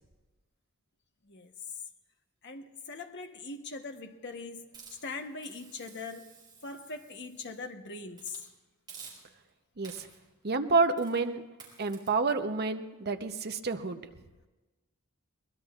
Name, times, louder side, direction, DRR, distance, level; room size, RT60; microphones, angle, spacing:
voice 1, 2.4-6.3 6.6-8.4, left 3 dB, 55° left, 1.1 m, -41 dB
Hiss, 4.7-7.6 8.1-8.5 8.9-9.5 9.8-10.3 11.0-11.2 11.6-12.1, right 5 dB, 20° right, 4.4 m, -52 dB
voice 2, 9.8-10.1 10.4-11.4 11.8-14.0, right 4 dB, 45° right, 0.8 m, -29 dB
23.0 x 20.0 x 2.4 m
head